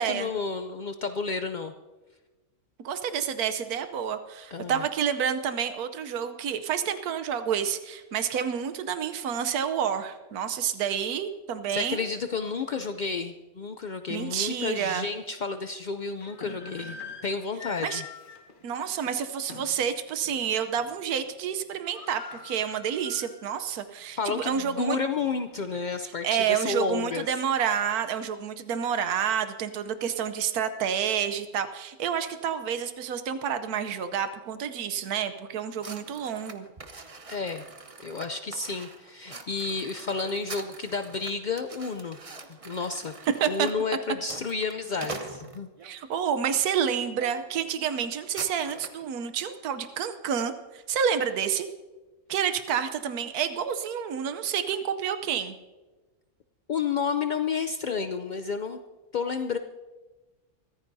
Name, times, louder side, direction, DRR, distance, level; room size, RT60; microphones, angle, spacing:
voice 1, 0.0-1.7 4.5-4.8 11.7-18.0 24.2-27.3 37.3-37.7 38.0-42.2 42.6-43.1 43.5-45.7 56.7-58.8 59.1-59.6, left 5 dB, 75° left, 8 dB, 0.4 m, -31 dB
voice 2, 2.8-12.1 14.1-15.1 17.8-18.0 18.6-25.0 26.0-36.7 43.4-43.7 45.8-51.7 52.3-55.5, right 8 dB, 90° right, 9 dB, 1.3 m, -29 dB
sound 1, 14.3-14.4 15.0-15.1 16.0-19.8 20.2-20.4 20.8-21.2 21.4-21.5 21.7-23.7 24.1-24.2 24.8-26.1, left 6 dB, 35° left, 1.3 m, -44 dB
sound 2, 35.8-45.9 46.6-46.8 47.1-47.3 47.6-49.1, right 3 dB, 30° right, 0.8 m, -44 dB
23.5 x 14.5 x 2.7 m, 1.2 s
omnidirectional pair, 1.5 m